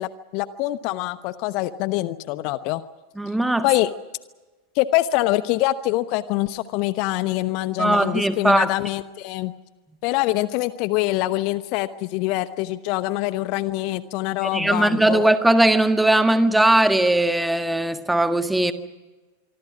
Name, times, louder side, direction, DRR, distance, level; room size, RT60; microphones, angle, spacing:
voice 1, 0.0-2.8 3.6-3.9 4.7-9.5 10.0-15.3, left 17 dB, 45° left, 0.9 m, -24 dB
voice 2, 3.2-3.6 7.8-8.7 14.5-18.7, right 1 dB, 5° right, 1.6 m, -19 dB
26.0 x 24.0 x 6.1 m
figure-of-eight pair, 90°, 0 cm